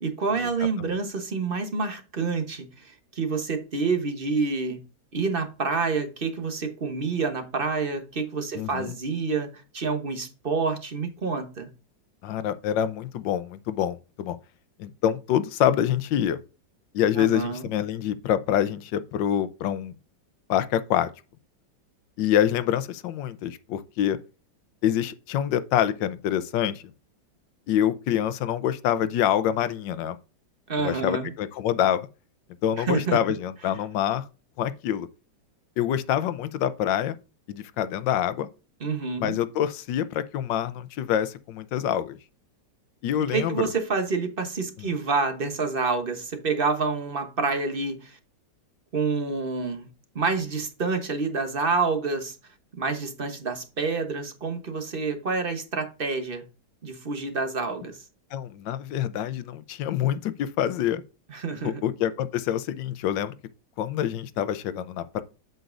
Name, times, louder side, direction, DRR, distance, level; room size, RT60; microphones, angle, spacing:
voice 1, 0.0-4.8 5.1-11.7 17.2-17.7 30.7-31.3 32.8-33.2 38.8-39.4 43.3-48.2 48.9-49.9 50.1-52.4 52.8-56.4 56.8-58.0 61.3-61.8, right 4 dB, 35° right, 1.0 m, -28 dB
voice 2, 8.5-8.9 12.2-14.4 14.8-16.4 16.9-19.9 20.5-21.1 22.2-24.2 24.8-26.8 27.7-30.2 30.8-32.0 32.6-34.2 34.6-35.1 35.8-37.1 37.5-38.5 39.2-42.2 43.0-43.7 44.8-44.9 58.3-61.0 61.6-63.3 63.8-65.2, left 10 dB, 75° left, 1.3 m, -26 dB
8.0 x 8.0 x 2.5 m
omnidirectional pair, 2.1 m